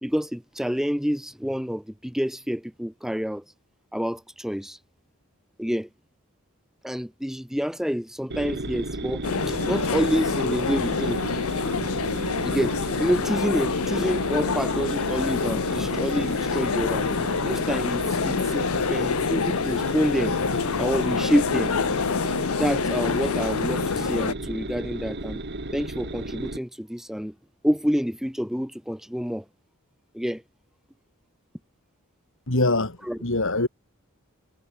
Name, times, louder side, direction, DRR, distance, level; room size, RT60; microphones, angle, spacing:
voice 1, 0.0-3.4 3.9-4.8 5.6-5.9 6.8-11.2 12.4-17.1 17.4-20.4 20.8-21.7 22.6-25.4 25.7-27.3 27.6-29.5 30.1-30.4 33.0-33.2, equal, ahead, 1.9 m, -28 dB
sound 1, 8.3-26.6, right 2 dB, 50° right, 2.3 m, -34 dB
sound 2, 9.2-24.3, left 5 dB, 80° left, 0.8 m, -26 dB
voice 2, 32.5-33.7, left 2 dB, 65° left, 3.5 m, -24 dB
head